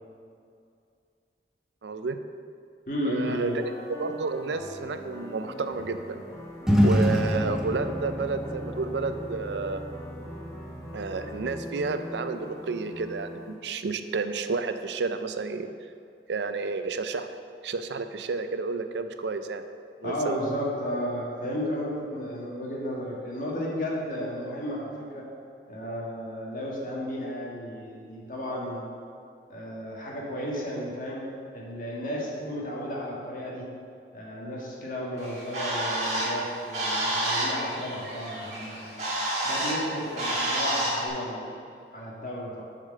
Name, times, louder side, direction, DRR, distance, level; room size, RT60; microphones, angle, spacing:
voice 1, 1.8-2.2 3.0-6.2 6.8-9.8 10.9-15.7 16.3-17.3 17.6-19.6 20.0-20.4, right 4 dB, 80° right, 9 dB, 0.5 m, -31 dB
voice 2, 2.9-3.5 20.0-25.3 25.7-28.9 29.5-31.2 31.5-33.7 34.1-38.9 39.4-42.6, equal, 50° left, -3 dB, 1.8 m, -33 dB
sound 1, 3.3-13.6, left 1 dB, 20° left, 1.2 m, -42 dB
sound 2, 6.7-11.6, equal, 5° right, 0.7 m, -26 dB
Bird, 35.2-41.1, right 1 dB, 40° right, 2.0 m, -29 dB
7.3 x 5.0 x 6.5 m, 2.4 s
head